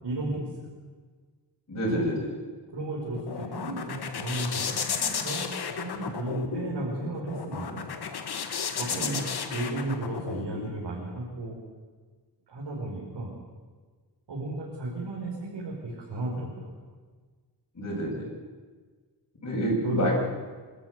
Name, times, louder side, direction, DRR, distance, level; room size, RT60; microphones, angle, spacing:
voice 1, 0.0-0.5 1.9-2.0 2.7-7.8 8.8-9.2 9.5-11.6 12.5-13.3 14.3-16.7 19.8-20.1, right 2 dB, 75° right, -5 dB, 5.5 m, -34 dB
voice 2, 1.7-2.3 8.8-9.2 17.7-18.3 19.4-20.1, equal, 40° left, -4 dB, 7.9 m, -28 dB
sound 1, 2.8-10.7, left 6 dB, 65° left, 1.7 m, -33 dB
27.0 x 13.0 x 8.3 m, 1.5 s
wide cardioid pair, 135°, 42 cm